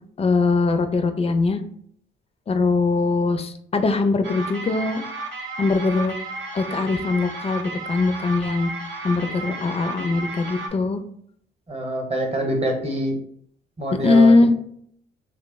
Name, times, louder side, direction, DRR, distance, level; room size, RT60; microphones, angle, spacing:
voice 1, 0.2-1.6 2.5-5.0 5.5-6.1 6.5-8.7 9.0-11.0 14.0-14.5, left 3 dB, 30° left, 8 dB, 0.4 m, -21 dB
sound 1, 4.2-10.7, right 3 dB, 70° right, 0.8 m, -33 dB
voice 2, 11.7-13.2 13.8-14.5, right 1 dB, 30° right, 3 dB, 0.8 m, -25 dB
3.2 x 2.0 x 3.4 m, 0.66 s
cardioid pair, 90°, 20 cm